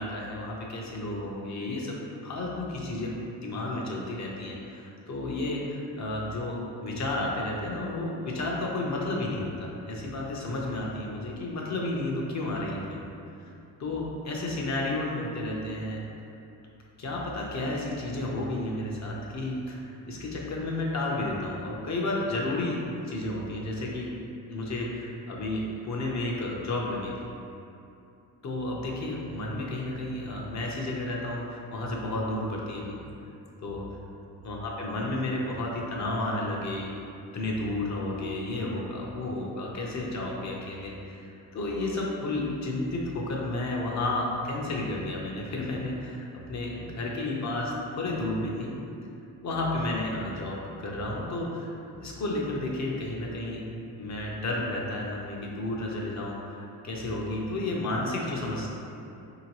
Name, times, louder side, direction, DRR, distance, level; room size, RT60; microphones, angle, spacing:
voice 1, 0.0-13.0 13.8-16.0 17.0-22.8 23.1-24.1 24.5-27.1 28.4-33.0 33.6-33.8 34.4-37.0 37.3-48.8 49.4-51.7 52.0-53.6 54.0-58.7, left 2 dB, 45° left, -2 dB, 0.8 m, -32 dB
4.5 x 2.9 x 2.9 m, 2.7 s
cardioid pair, 95°, 40 cm